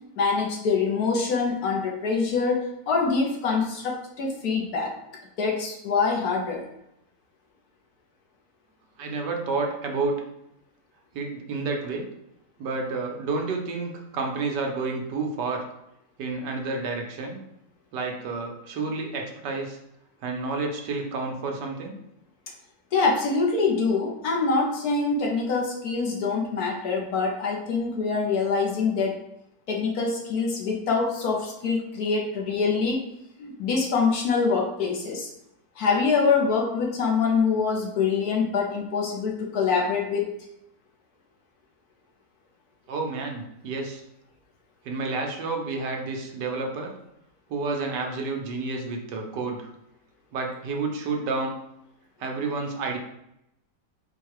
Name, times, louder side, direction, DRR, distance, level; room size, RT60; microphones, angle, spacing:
voice 1, 0.2-4.9 5.4-6.7 22.9-29.2 29.7-33.0 33.4-35.3 35.8-40.3, left 4 dB, 65° left, -1 dB, 1.3 m, -25 dB
voice 2, 9.0-10.2 11.1-12.1 12.6-15.6 16.2-17.4 17.9-19.8 20.2-21.9 42.9-44.0 44.8-46.9 47.5-49.7 50.3-51.5 52.2-53.0, right 3 dB, 75° right, 1 dB, 1.4 m, -30 dB
4.5 x 2.3 x 4.7 m, 0.81 s
omnidirectional pair, 1.9 m